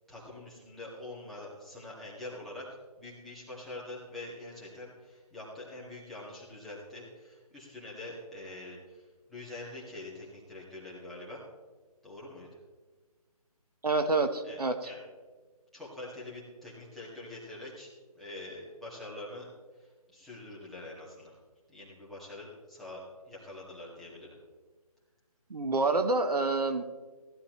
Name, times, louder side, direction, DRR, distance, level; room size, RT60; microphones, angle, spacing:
voice 1, 0.1-2.7 3.0-11.4 12.0-12.6 14.4-15.0 15.7-19.5 19.7-21.4 21.7-24.4, left 2 dB, ahead, -7 dB, 1.9 m, -45 dB
voice 2, 13.8-14.9 25.5-26.8, right 3 dB, 80° right, 8 dB, 1.2 m, -27 dB
16.0 x 11.5 x 3.2 m, 1.4 s
figure-of-eight pair, 155°, 20 cm